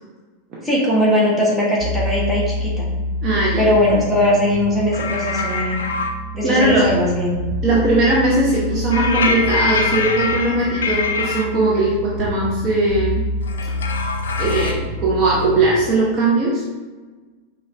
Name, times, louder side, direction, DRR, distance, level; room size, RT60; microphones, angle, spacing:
voice 1, 0.6-2.9 3.6-5.8 6.3-7.3 11.5-11.6, left 1 dB, 5° right, -6 dB, 1.3 m, -19 dB
sound 1, 1.8-15.7, equal, 60° right, 0.8 m, -27 dB
voice 2, 3.2-3.7 6.4-6.9 7.6-13.3 14.4-16.6, right 2 dB, 25° right, -6 dB, 0.9 m, -19 dB
sound 2, 4.9-6.1 8.9-11.4 13.4-14.7, left 4 dB, 65° left, 0.4 m, -24 dB
5.5 x 2.5 x 3.3 m, 1.3 s
figure-of-eight pair, 90°, 0 cm